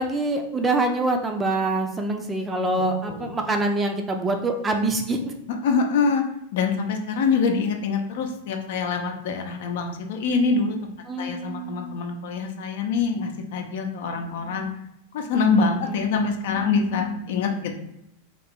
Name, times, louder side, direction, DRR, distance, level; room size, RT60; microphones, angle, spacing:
voice 1, 0.0-5.3 11.1-12.0 15.6-16.0, right 2 dB, 15° right, 4 dB, 0.5 m, -25 dB
voice 2, 2.7-3.3 5.5-6.2 6.5-14.7 15.1-17.7, left 4 dB, 55° left, 3 dB, 0.7 m, -25 dB
3.3 x 2.9 x 4.2 m, 0.82 s
figure-of-eight pair, 90°, 0 cm